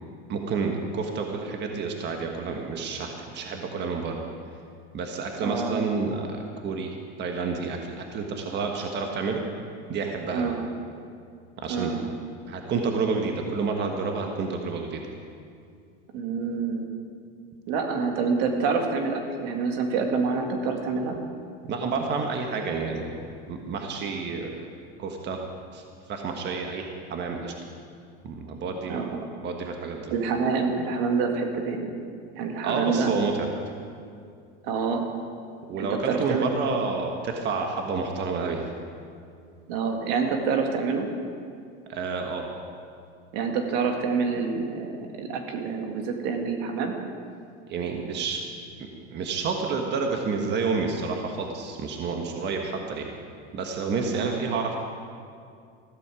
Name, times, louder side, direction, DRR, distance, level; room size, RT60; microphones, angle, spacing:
voice 1, 0.3-4.2 4.9-6.4 6.6-9.4 9.9-10.5 11.6-11.9 12.5-15.0 21.6-24.7 25.0-25.5 25.7-25.8 26.1-27.5 28.2-29.1 29.4-30.1 32.6-33.5 35.7-38.7 41.9-42.4 47.7-48.4 48.8-53.1 53.5-54.8, right 4 dB, 35° right, 2 dB, 1.5 m, -29 dB
voice 2, 5.4-5.8 10.3-10.6 11.7-12.0 16.1-16.9 17.7-21.2 28.9-29.2 30.1-31.9 32.4-33.1 34.6-35.1 35.8-36.5 39.7-41.1 43.3-46.9 54.1-54.4, right 5 dB, 65° right, 3 dB, 2.0 m, -27 dB
15.0 x 13.0 x 4.9 m, 2.3 s
supercardioid pair, 115°, 30 cm